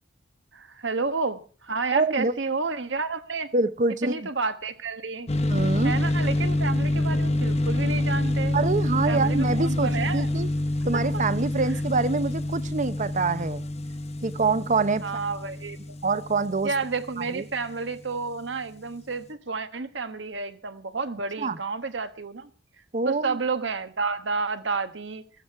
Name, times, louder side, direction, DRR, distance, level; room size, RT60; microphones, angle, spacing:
voice 1, 0.5-3.5 4.0-5.3 5.8-8.6 9.1-10.3 11.1-11.2 15.0-15.8 16.6-22.5 23.0-25.2, right 4 dB, 75° right, 1.4 m, -30 dB
voice 2, 1.9-2.3 3.5-4.3 5.5-6.0 8.5-10.5 10.8-13.6 14.2-15.0 16.0-16.7 17.2-17.4 21.4-21.6 22.9-23.4, right 3 dB, 45° right, 0.8 m, -25 dB
sound 1, 5.3-17.7, left 1 dB, 35° left, 1.0 m, -27 dB
14.5 x 14.0 x 4.7 m
head